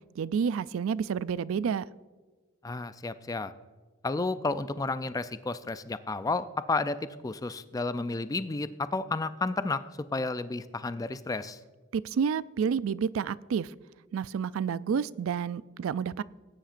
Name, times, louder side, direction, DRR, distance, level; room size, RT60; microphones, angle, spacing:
voice 1, 0.2-1.9 11.9-13.7 14.1-16.2, right 6 dB, 70° right, 18 dB, 0.3 m, -29 dB
voice 2, 2.6-3.5 4.0-9.8 10.1-11.6, left 3 dB, 15° left, 12 dB, 0.3 m, -31 dB
18.5 x 10.0 x 2.5 m, 1.3 s
head